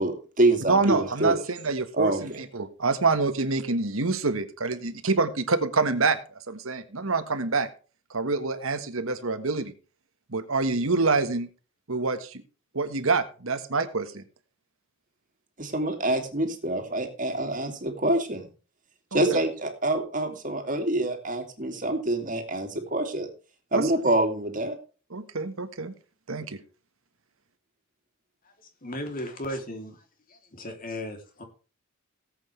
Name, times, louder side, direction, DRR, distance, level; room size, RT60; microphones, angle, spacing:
voice 1, 0.0-1.3 2.0-2.4 15.6-18.5 19.1-23.3 23.7-24.8, right 1 dB, 40° right, 5 dB, 2.6 m, -26 dB
voice 2, 0.7-6.2 6.5-7.7 8.1-9.7 10.3-11.5 11.9-12.4 12.7-14.2 19.1-19.2 23.7-23.9 25.1-25.9 26.3-26.6, right 3 dB, 80° right, 9 dB, 1.5 m, -26 dB
voice 3, 28.8-30.0 30.3-31.4, left 1 dB, 45° left, 4 dB, 3.0 m, -36 dB
18.5 x 8.2 x 3.3 m, 0.35 s
head